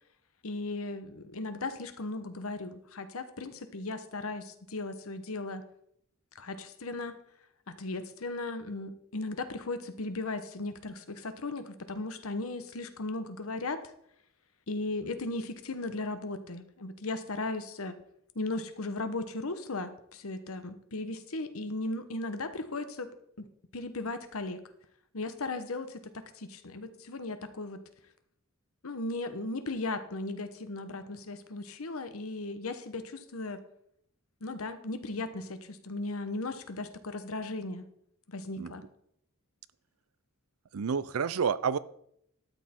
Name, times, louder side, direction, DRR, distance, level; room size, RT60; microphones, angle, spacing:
voice 1, 0.4-5.6 6.3-7.2 7.7-13.8 14.7-18.0 18.3-23.1 23.4-23.5 23.7-24.6 25.1-27.8 28.8-33.6 34.4-37.9 38.3-38.8, left 2 dB, 75° left, 10 dB, 1.1 m, -36 dB
voice 2, 40.7-41.8, right 6 dB, 80° right, 17 dB, 0.5 m, -29 dB
12.5 x 7.5 x 4.4 m, 0.72 s
head